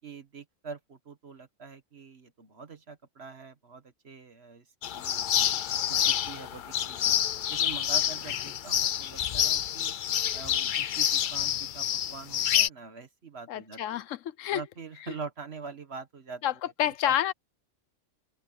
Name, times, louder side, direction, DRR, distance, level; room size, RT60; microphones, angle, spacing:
voice 1, 0.0-4.7 4.9-5.5 5.9-7.2 7.5-10.0 10.3-14.0 14.5-17.2, right 5 dB, 55° right, 1.8 m, -44 dB
sound 1, 4.8-12.7, left 10 dB, 60° left, 0.5 m, -28 dB
voice 2, 13.5-14.6 16.4-16.5 16.8-17.3, left 12 dB, 90° left, 1.1 m, -28 dB
open air
omnidirectional pair, 1.3 m